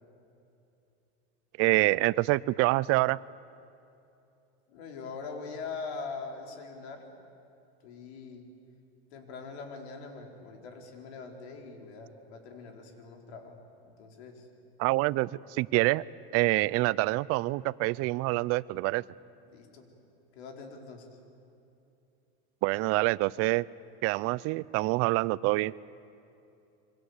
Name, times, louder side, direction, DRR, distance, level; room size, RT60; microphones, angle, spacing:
voice 1, 1.6-3.2 14.8-16.0 16.3-19.0 22.6-23.7 24.0-25.7, right 21 dB, 50° right, 20 dB, 0.6 m, -26 dB
voice 2, 4.7-7.0 7.8-8.4 9.1-13.6 13.8-14.5 19.4-19.9 20.3-21.1, left 4 dB, 80° left, 3 dB, 4.5 m, -42 dB
28.0 x 24.5 x 8.2 m, 2.8 s
supercardioid pair, 135°, 31 cm